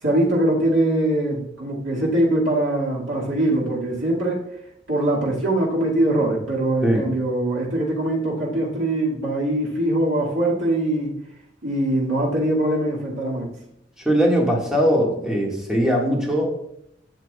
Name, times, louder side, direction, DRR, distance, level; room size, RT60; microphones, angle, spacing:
voice 1, 0.0-4.4 4.9-11.1 11.6-13.5, right 1 dB, 85° right, -5 dB, 2.4 m, -22 dB
voice 2, 14.1-16.5, equal, 5° right, -3 dB, 2.1 m, -20 dB
12.0 x 7.5 x 2.5 m, 0.75 s
head